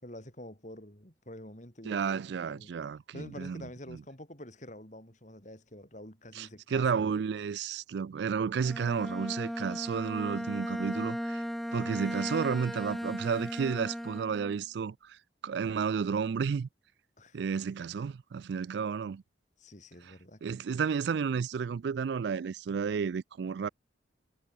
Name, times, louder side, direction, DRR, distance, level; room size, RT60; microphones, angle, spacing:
voice 1, 0.0-2.7 3.1-7.1 17.2-17.4 19.6-20.8, left 1 dB, 40° left, 5.6 m, -48 dB
voice 2, 1.8-3.6 3.9-4.0 6.3-11.4 11.7-15.2 15.4-16.7 17.3-19.2 20.4-23.7, right 6 dB, 60° right, 0.3 m, -32 dB
Bowed string instrument, 8.6-14.6, equal, ahead, 0.6 m, -36 dB
head